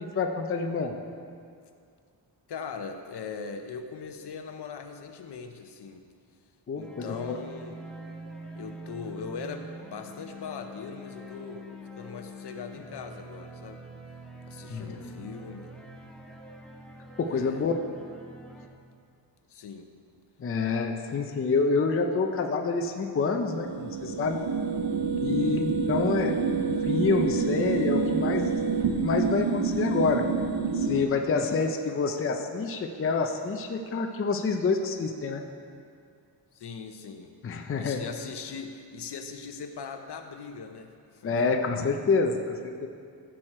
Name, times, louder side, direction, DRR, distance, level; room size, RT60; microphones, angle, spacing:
voice 1, 0.1-0.9 6.7-7.4 14.7-15.2 17.2-17.7 20.4-24.4 25.2-26.4 26.8-28.6 29.0-30.3 30.7-35.5 37.4-38.0 41.2-42.5 42.8-42.9, left 4 dB, 30° left, 4 dB, 0.5 m, -27 dB
voice 2, 2.5-6.0 6.8-7.8 8.6-11.7 11.9-13.8 14.5-15.7 17.3-17.7 19.5-19.9 25.4-25.6 36.5-37.3 37.8-41.4, left 5 dB, 65° left, 6 dB, 0.8 m, -40 dB
sound 1, 6.8-18.7, equal, ahead, 0.7 m, -44 dB
sound 2, 23.5-31.0, right 5 dB, 85° right, 0.8 m, -28 dB
14.5 x 6.3 x 4.3 m, 2.2 s
wide cardioid pair, 180°, 43 cm